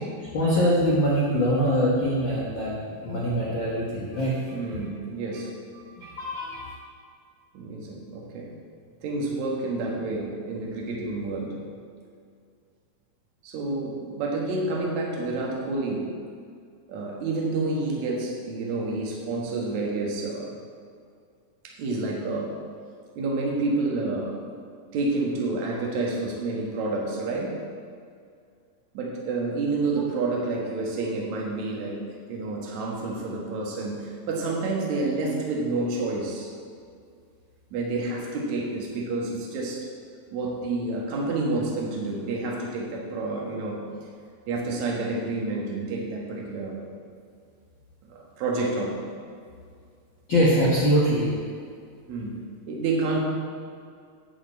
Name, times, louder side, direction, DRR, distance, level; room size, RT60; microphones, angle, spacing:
voice 1, 0.3-4.5 6.0-6.7 50.3-51.3, equal, 45° left, -8 dB, 1.6 m, -23 dB
voice 2, 4.5-5.5 7.5-8.5 9.0-11.6 13.4-16.1 16.9-20.5 21.6-22.6 23.2-24.4 24.9-27.6 28.9-32.0 32.3-36.5 37.7-39.9 40.3-43.8 44.5-46.8 48.1-49.0 52.1-52.4 52.7-53.2, right 3 dB, 55° right, -1 dB, 2.5 m, -29 dB
10.5 x 4.9 x 8.1 m, 2.2 s
omnidirectional pair, 4.4 m